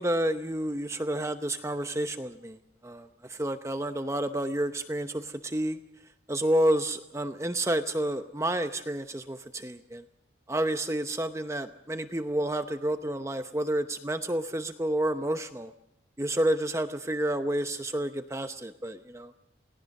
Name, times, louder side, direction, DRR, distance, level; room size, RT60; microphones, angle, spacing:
voice 1, 0.0-2.6 2.8-5.8 6.3-10.0 10.5-15.7 16.2-19.3, right 1 dB, 15° right, 8 dB, 0.8 m, -30 dB
28.5 x 18.5 x 6.5 m, 0.79 s
head